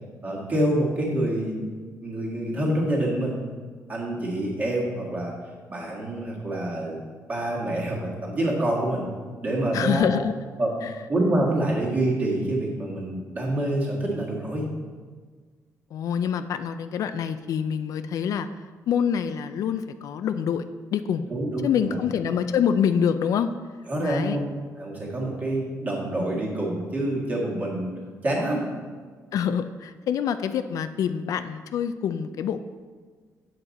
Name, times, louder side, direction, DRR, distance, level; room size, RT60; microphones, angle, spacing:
voice 1, 0.2-1.6 2.0-3.4 3.9-5.3 5.7-7.0 7.3-9.0 9.4-10.2 10.6-10.7 11.1-14.7 21.3-22.0 23.9-24.5 24.8-27.9 28.2-28.7, right 1 dB, 25° right, -3 dB, 1.7 m, -26 dB
voice 2, 9.7-10.3 10.8-10.9 15.9-18.5 18.9-20.7 20.9-21.3 21.6-23.5 24.0-24.4 29.3-32.6, left 8 dB, 65° left, 11 dB, 0.3 m, -26 dB
7.8 x 7.4 x 4.0 m, 1.5 s
wide cardioid pair, 175°, 6 cm